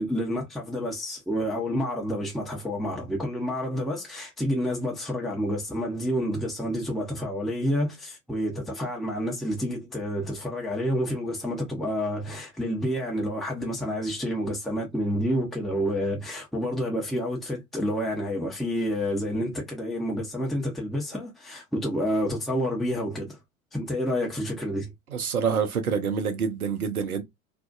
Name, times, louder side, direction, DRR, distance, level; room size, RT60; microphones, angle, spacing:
voice 1, 0.0-23.4 23.7-24.9, equal, ahead, 0.8 m, -29 dB
voice 2, 25.1-27.2, right 6 dB, 85° right, 0.7 m, -27 dB
2.6 x 2.3 x 2.3 m
figure-of-eight pair, 80°, 42 cm